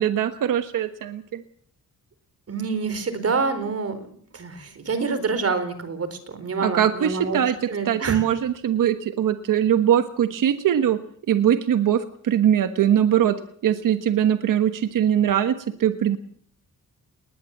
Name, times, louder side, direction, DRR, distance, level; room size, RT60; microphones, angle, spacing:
voice 1, 0.0-1.4 6.6-11.0 11.3-13.3 13.6-16.2, right 10 dB, 80° right, 9 dB, 1.3 m, -21 dB
voice 2, 2.5-4.1 4.3-7.4 7.7-8.2, right 4 dB, 50° right, 12 dB, 4.4 m, -27 dB
20.5 x 19.5 x 7.4 m, 0.62 s
cardioid pair, 100°, 32 cm